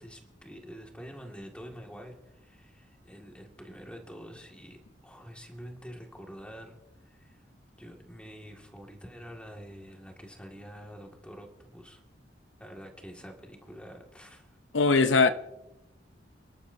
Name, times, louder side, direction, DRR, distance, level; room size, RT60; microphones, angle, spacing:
voice 1, 0.0-6.8 7.1-7.4 7.8-12.0 12.6-14.6, equal, 5° left, 2.0 m, -47 dB
voice 2, 14.7-15.3, left 4 dB, 85° left, 0.7 m, -20 dB
29.5 x 11.5 x 2.7 m
head